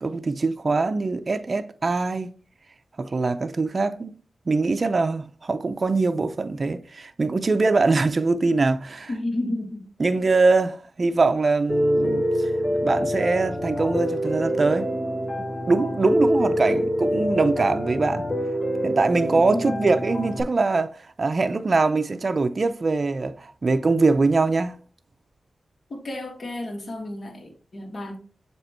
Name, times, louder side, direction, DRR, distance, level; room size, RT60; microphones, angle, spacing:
voice 1, 0.0-2.3 3.0-4.2 4.5-9.1 10.0-14.9 15.4-18.3 18.8-24.7, right 3 dB, 50° right, 0.5 m, -23 dB
voice 2, 9.1-9.8 19.5-19.9 25.9-28.2, left 1 dB, 55° left, 2.0 m, -31 dB
Piano, 11.7-20.4, equal, 25° left, 3.1 m, -25 dB
7.4 x 3.0 x 4.4 m
cardioid pair, 55°, 0 cm